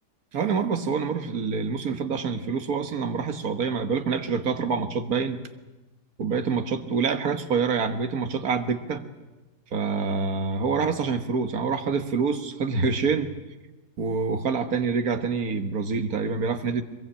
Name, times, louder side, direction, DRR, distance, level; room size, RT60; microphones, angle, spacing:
voice 1, 0.3-5.4 6.2-9.0 9.7-13.3 14.0-16.8, right 5 dB, 65° right, 8 dB, 1.9 m, -26 dB
23.5 x 22.0 x 8.6 m, 1.1 s
omnidirectional pair, 1.7 m